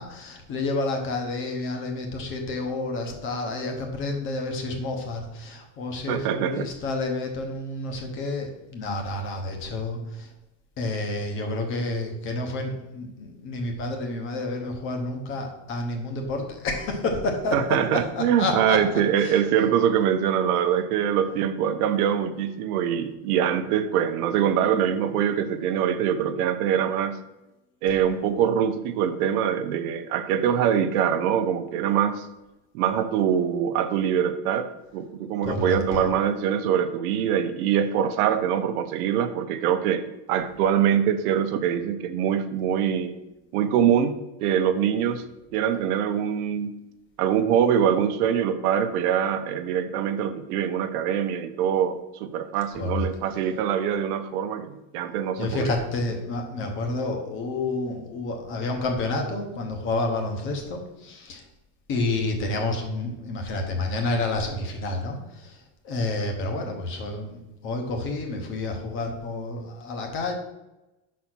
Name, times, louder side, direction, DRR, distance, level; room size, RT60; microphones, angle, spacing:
voice 1, 0.0-10.3 10.8-19.4 35.4-36.1 52.7-53.1 55.4-61.4 61.9-70.3, left 2 dB, 25° left, 3 dB, 0.9 m, -29 dB
voice 2, 6.1-6.7 17.5-27.2 27.8-32.3 32.7-43.1 43.5-45.2 45.5-46.8 47.2-55.8, right 8 dB, 85° right, 10 dB, 0.8 m, -24 dB
5.7 x 4.2 x 6.0 m, 0.98 s
cardioid pair, 180°, 44 cm